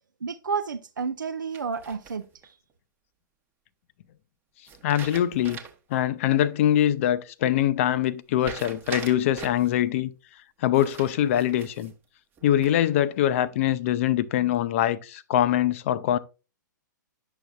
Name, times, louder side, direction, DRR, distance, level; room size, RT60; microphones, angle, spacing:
voice 1, 0.2-2.5, right 5 dB, 70° right, 0.5 m, -31 dB
sound 1, 1.5-2.5 4.7-5.9 6.3-6.4 8.4-9.7 10.7-11.9 12.4-13.0, right 6 dB, 20° right, 1.0 m, -41 dB
voice 2, 4.8-5.6 5.9-10.1 10.6-11.9 12.4-16.2, left 11 dB, 40° left, 0.6 m, -23 dB
9.8 x 6.5 x 2.3 m
figure-of-eight pair, 115°, 11 cm